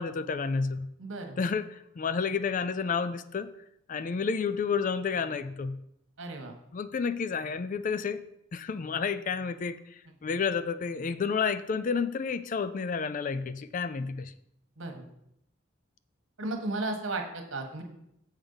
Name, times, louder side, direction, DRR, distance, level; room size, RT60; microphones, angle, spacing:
voice 1, 0.0-0.9 1.4-3.5 3.9-5.8 6.7-8.2 8.5-9.8 10.2-14.3, left 5 dB, 40° left, 13 dB, 0.4 m, -30 dB
voice 2, 1.0-1.4 6.2-6.5 14.8-15.0 16.4-17.8, right 2 dB, 75° right, 3 dB, 1.4 m, -34 dB
7.2 x 5.3 x 5.5 m, 0.79 s
head